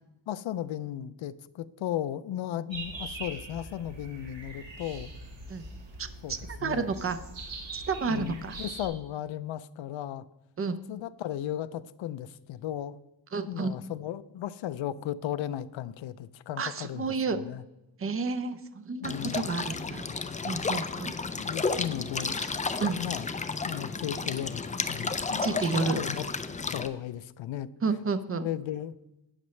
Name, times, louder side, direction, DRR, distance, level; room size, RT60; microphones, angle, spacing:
voice 1, 0.3-5.1 6.2-6.9 8.1-10.3 10.9-13.0 13.5-17.6 19.0-19.5 20.5-20.8 21.3-22.4 23.0-23.3 23.6-24.6 24.9-26.3 26.7-27.7 28.3-28.9, left 11 dB, 70° left, 14 dB, 0.6 m, -36 dB
sound 1, 2.7-8.9, right 2 dB, 70° right, 2.5 m, -42 dB
voice 2, 6.0-7.2 7.7-8.6 10.6-10.8 13.3-13.7 16.6-17.4 18.0-20.0 20.4-21.1 22.8-23.0 25.4-26.0 27.8-28.5, right 4 dB, 30° right, 10 dB, 0.6 m, -31 dB
sound 2, 19.0-26.9, left 4 dB, 20° left, 0.3 m, -32 dB
12.5 x 8.8 x 3.2 m, 0.92 s
wide cardioid pair, 155°, 47 cm